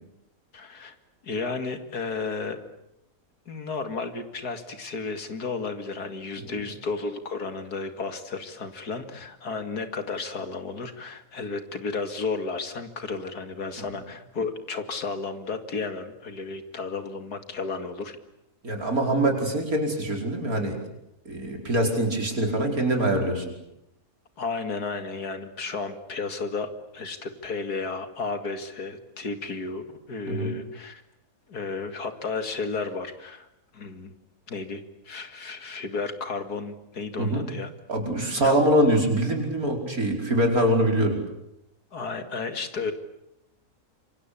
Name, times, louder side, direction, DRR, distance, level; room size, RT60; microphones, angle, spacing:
voice 1, 0.5-0.9 1.2-2.6 3.5-18.2 24.4-31.0 31.5-33.5 33.7-34.1 34.5-37.7 38.2-38.6 41.9-42.9, left 4 dB, 85° left, 9 dB, 2.8 m, -33 dB
voice 2, 18.6-20.8 21.3-23.5 30.3-30.5 37.2-37.5 37.9-41.2, right 1 dB, 65° right, 3 dB, 5.6 m, -24 dB
27.0 x 24.5 x 8.7 m, 0.83 s
omnidirectional pair, 1.6 m